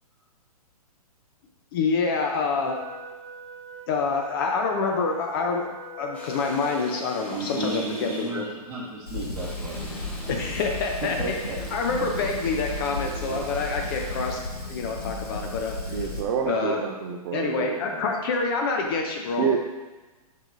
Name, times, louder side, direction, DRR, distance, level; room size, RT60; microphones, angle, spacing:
voice 1, 1.7-2.8 3.9-5.7 6.0-8.4 10.3-11.3 11.7-14.4 14.7-16.0 16.5-16.8 17.3-19.6, left 4 dB, 35° left, 2 dB, 0.7 m, -27 dB
Wind instrument woodwind instrument, 2.6-7.0, right 1 dB, 55° left, 1.3 m, -43 dB
sound 1, 6.1-8.5 9.3-14.3, right 1 dB, 5° left, 0.9 m, -43 dB
voice 2, 7.3-10.8 11.2-11.6, right 2 dB, 15° right, -8 dB, 1.4 m, -34 dB
Fire, 9.1-16.2, left 2 dB, 80° left, 1.6 m, -34 dB
voice 3, 15.9-18.1 19.4-19.6, right 7 dB, 35° right, 1 dB, 0.5 m, -28 dB
8.8 x 5.6 x 2.6 m, 1.2 s
figure-of-eight pair, 115°, 20 cm